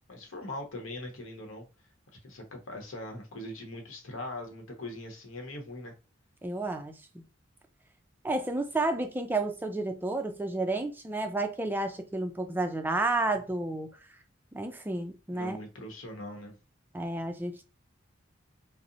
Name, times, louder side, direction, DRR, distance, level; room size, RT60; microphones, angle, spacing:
voice 1, 0.0-1.6 2.2-5.9 15.3-16.5, left 1 dB, 85° left, 0.8 m, -41 dB
voice 2, 6.4-7.2 8.2-13.9 14.5-15.6 16.9-17.6, right 2 dB, 10° right, 0.3 m, -31 dB
2.7 x 2.0 x 2.5 m
head